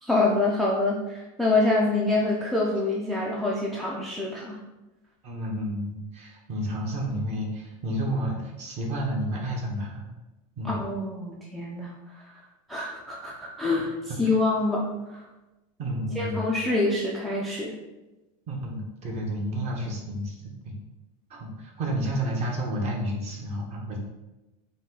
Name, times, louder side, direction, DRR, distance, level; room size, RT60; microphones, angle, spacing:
voice 1, 0.0-4.6 10.6-11.9 12.7-13.9 14.2-15.2 16.2-17.8, left 2 dB, ahead, -4 dB, 0.4 m, -26 dB
voice 2, 5.2-10.1 10.6-10.8 14.2-14.4 15.8-16.4 18.5-20.4 20.6-20.7 21.3-24.0, right 1 dB, 35° right, 0 dB, 1.0 m, -30 dB
5.2 x 2.2 x 3.8 m, 1.0 s
supercardioid pair, 145°, 20 cm